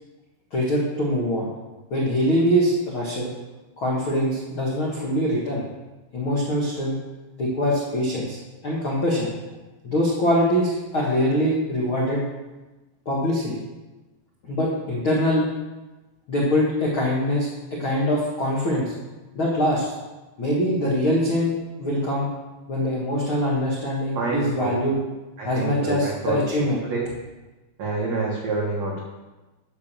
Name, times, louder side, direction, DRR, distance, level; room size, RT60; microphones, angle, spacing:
voice 1, 0.5-1.5 1.9-3.3 3.8-5.6 6.1-7.0 7.4-9.3 9.8-12.2 13.0-13.6 14.4-15.5 16.3-18.9 19.3-19.9 20.4-22.3 22.7-25.0 25.4-26.8, equal, 75° left, -5 dB, 1.1 m, -23 dB
voice 2, 24.1-24.8 25.4-26.4 26.8-27.1 27.8-29.0, right 3 dB, 75° right, -2 dB, 1.5 m, -27 dB
10.5 x 6.0 x 6.8 m, 1.1 s
omnidirectional pair, 5.3 m